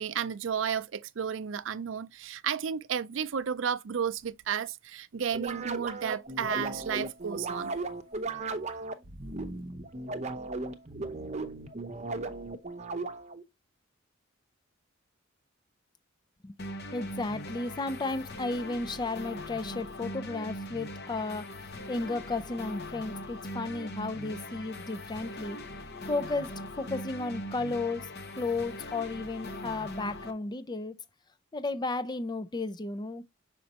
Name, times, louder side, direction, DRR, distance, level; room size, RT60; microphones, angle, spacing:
voice 1, 0.0-7.8, right 7 dB, 65° right, 0.4 m, -32 dB
sound 1, 5.3-13.4, right 3 dB, 35° right, 0.8 m, -36 dB
sound 2, 16.6-30.3, left 1 dB, 55° left, 0.9 m, -41 dB
voice 2, 16.9-21.5 21.9-25.6 26.1-31.0 31.5-33.2, left 3 dB, 20° left, 0.4 m, -34 dB
6.2 x 5.2 x 2.9 m
head